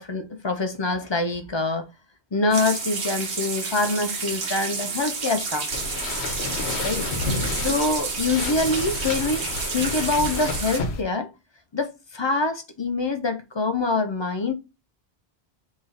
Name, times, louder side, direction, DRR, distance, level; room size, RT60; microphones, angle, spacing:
voice 1, 0.0-1.8 2.3-5.7 6.8-7.1 7.6-9.5 9.7-11.3 11.7-14.5, left 3 dB, 35° left, 0.5 m, -25 dB
sound 1, 2.5-10.8, right 4 dB, 90° right, 1.2 m, -30 dB
sound 2, 5.7-11.0, left 3 dB, 80° left, 1.0 m, -30 dB
3.8 x 3.0 x 3.9 m
omnidirectional pair, 1.1 m